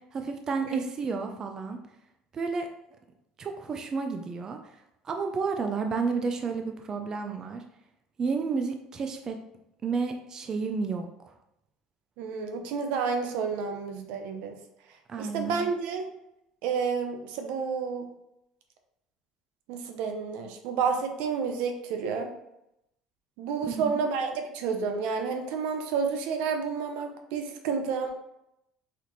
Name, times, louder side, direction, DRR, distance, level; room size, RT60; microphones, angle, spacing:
voice 1, 0.1-1.8 2.3-2.7 3.4-4.6 5.0-7.6 8.2-9.4 9.8-11.3 15.1-15.7 23.7-24.0, right 4 dB, 30° right, 4 dB, 0.4 m, -31 dB
voice 2, 12.2-14.5 15.2-16.1 16.6-18.1 19.7-22.3 23.4-28.1, right 5 dB, 80° right, 5 dB, 0.7 m, -30 dB
4.2 x 4.1 x 3.1 m, 0.84 s
cardioid pair, 130°, 2 cm